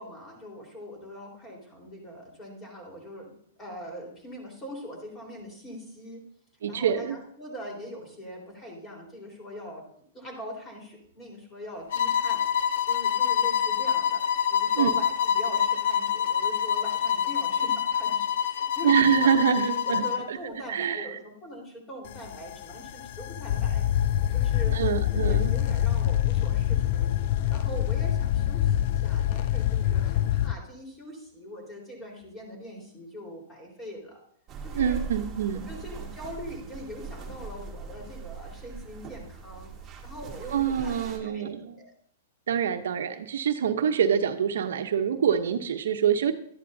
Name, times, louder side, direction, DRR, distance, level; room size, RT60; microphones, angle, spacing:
voice 1, 0.0-6.2 6.7-9.8 10.1-19.5 19.8-23.9 24.3-24.8 25.1-27.2 27.5-34.2 34.6-35.0 35.7-39.7 40.0-41.9, equal, 20° left, 0 dB, 4.2 m, -42 dB
voice 2, 6.6-7.2 14.8-14.9 18.8-20.4 20.7-21.2 24.7-25.5 34.7-35.7 40.5-41.8 42.5-46.3, right 8 dB, 80° right, 8 dB, 0.9 m, -25 dB
sound 1, 11.9-20.3, left 8 dB, 70° left, 0.7 m, -26 dB
sound 2, 22.1-30.5, left 11 dB, 50° left, 0.3 m, -25 dB
sound 3, 34.5-41.2, right 6 dB, 20° right, 1.7 m, -40 dB
12.5 x 11.0 x 2.7 m, 0.64 s
hypercardioid pair, 135°, 0 cm